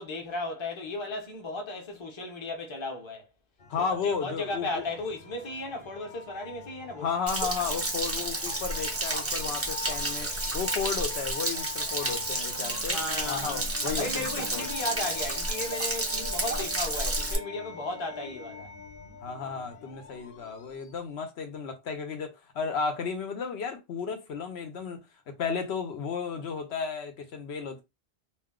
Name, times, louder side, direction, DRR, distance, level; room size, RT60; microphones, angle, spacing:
voice 1, 0.0-3.3 3.7-7.1 12.9-13.6 14.0-18.7, left 2 dB, 30° left, 0.7 m, -35 dB
sound 1, 3.6-21.1, left 7 dB, 60° left, 0.9 m, -44 dB
voice 2, 3.7-4.8 7.0-13.0 13.3-14.3 14.5-14.7 19.2-27.8, left 5 dB, 90° left, 1.0 m, -33 dB
Stream / Splash splatter / Trickle dribble, 7.3-17.4, right 2 dB, 20° right, 0.5 m, -31 dB
2.5 x 2.2 x 3.6 m
omnidirectional pair, 1.0 m